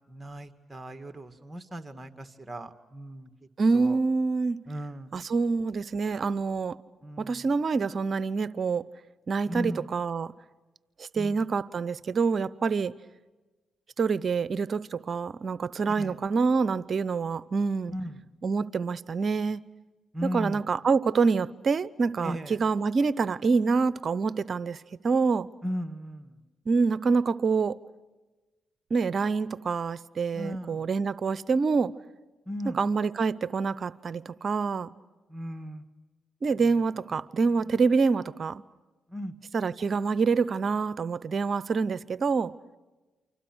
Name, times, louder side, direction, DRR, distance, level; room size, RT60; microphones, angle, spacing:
voice 1, 0.1-3.3 3.7-4.0 4.7-5.1 7.0-7.5 9.5-9.9 11.1-11.5 15.9-16.2 17.9-18.2 20.1-20.6 22.2-22.6 25.6-26.4 30.3-30.9 32.5-32.8 35.3-35.8 36.6-36.7 39.1-39.3, equal, 20° right, 2.2 m, -37 dB
voice 2, 3.6-4.6 5.1-6.8 7.2-8.8 9.3-10.3 11.0-12.9 14.0-17.9 18.4-19.6 20.3-25.5 26.7-27.8 28.9-31.9 32.6-34.9 36.4-38.6 39.5-42.5, right 4 dB, 55° right, 0.8 m, -26 dB
29.0 x 25.5 x 6.3 m
supercardioid pair, 55°, 0 cm